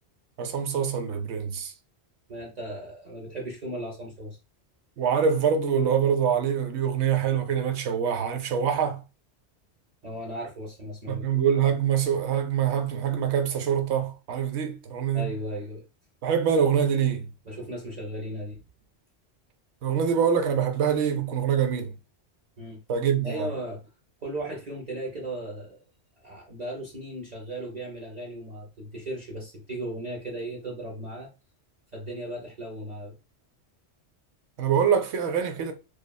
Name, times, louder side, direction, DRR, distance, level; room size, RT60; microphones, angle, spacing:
voice 1, 0.4-1.7 5.0-9.0 11.1-15.3 16.2-17.3 19.8-21.9 22.9-23.5 34.6-35.7, right 7 dB, 75° right, 0.8 m, -25 dB
voice 2, 2.3-4.4 10.0-11.3 15.1-15.8 17.5-18.6 22.6-22.8 23.2-23.9 24.2-25.8 26.2-31.3 31.9-33.2, right 1 dB, 45° right, 0.7 m, -36 dB
3.0 x 2.3 x 2.2 m
omnidirectional pair, 1.2 m